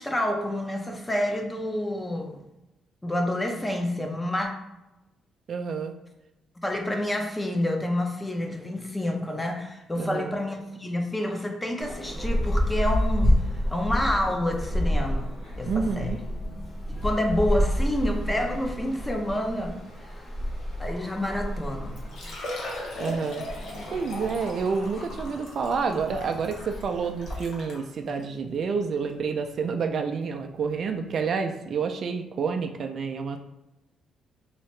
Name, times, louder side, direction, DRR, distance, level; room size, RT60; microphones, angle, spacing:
voice 1, 0.0-2.4 3.0-4.5 6.6-15.3 15.6-16.2 16.9-20.2 20.8-22.0, left 1 dB, 15° left, 3 dB, 0.6 m, -28 dB
voice 2, 5.5-5.9 10.0-10.4 15.7-16.2 23.0-23.4 23.9-33.4, right 5 dB, 55° right, 5 dB, 0.3 m, -29 dB
sound 1, 11.8-27.4, equal, 55° left, 1.1 m, -30 dB
Liquid, 22.0-27.8 28.5-28.6 29.1-29.2 30.8-30.9 31.1-31.2, left 1 dB, 75° left, 0.9 m, -38 dB
3.3 x 2.8 x 3.1 m, 0.94 s
cardioid pair, 90°, 0 cm